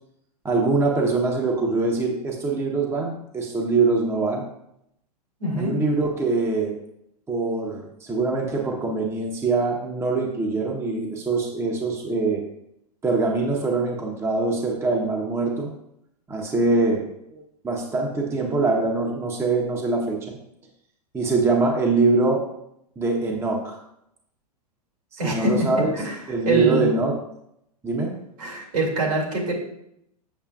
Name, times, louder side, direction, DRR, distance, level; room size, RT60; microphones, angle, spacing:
voice 1, 0.4-4.4 5.6-6.7 7.3-12.4 13.0-15.7 16.3-17.0 17.3-20.4 21.1-22.4 23.0-23.8 25.1-25.9 26.3-27.2 27.8-28.2, right 3 dB, 10° right, 1 dB, 0.8 m, -23 dB
voice 2, 5.4-5.8 25.2-25.6 26.0-26.1 26.4-26.9 28.4-29.5, right 2 dB, 70° right, -2 dB, 2.6 m, -24 dB
7.4 x 6.5 x 2.4 m, 0.79 s
hypercardioid pair, 105°, 21 cm